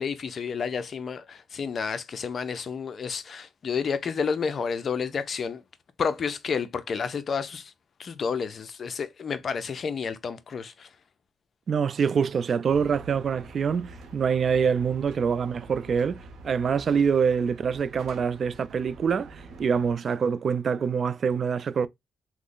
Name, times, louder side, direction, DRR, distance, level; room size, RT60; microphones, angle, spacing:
voice 1, 0.0-5.6 6.0-7.7 8.0-10.9, left 6 dB, 50° left, 0.5 m, -30 dB
voice 2, 11.7-21.9, right 6 dB, 50° right, 0.3 m, -25 dB
sound 1, 12.7-19.9, right 3 dB, 75° right, 0.7 m, -46 dB
3.1 x 2.1 x 3.8 m
cardioid pair, 90°, 0 cm